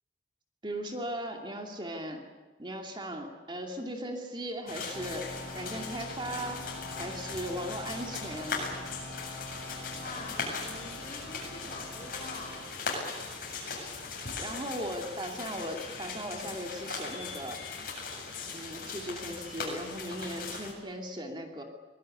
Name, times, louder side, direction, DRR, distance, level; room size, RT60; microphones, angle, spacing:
voice 1, 0.6-2.2 2.6-5.3 5.5-6.7 7.0-8.8 14.4-17.6 18.5-21.6, equal, 25° right, 3 dB, 2.6 m, -38 dB
sound 1, 4.7-20.7, left 4 dB, 50° left, 7.8 m, -39 dB
sound 2, 4.9-12.6, left 2 dB, 5° right, 7.2 m, -44 dB
voice 2, 9.7-12.6, left 2 dB, 35° left, 3 dB, 4.9 m, -45 dB
24.0 x 19.5 x 9.9 m, 1.3 s
head